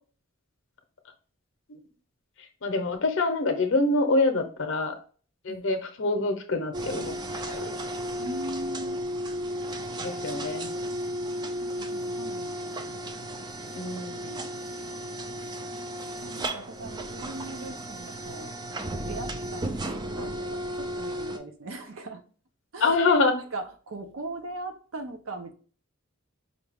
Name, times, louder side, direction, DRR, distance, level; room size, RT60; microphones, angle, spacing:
voice 1, 2.6-5.0 5.4-7.1 7.5-7.7 10.0-10.7 13.8-14.4 22.8-23.4, left 3 dB, 60° left, 6 dB, 0.7 m, -25 dB
sound 1, 6.7-21.4, right 1 dB, 20° right, 0.3 m, -34 dB
voice 2, 8.2-9.1 11.4-13.0 15.7-15.8 16.2-18.5 19.1-22.2 22.7-23.0 23.5-25.5, right 2 dB, 70° right, 7 dB, 0.6 m, -40 dB
5.1 x 2.3 x 3.4 m, 0.41 s
head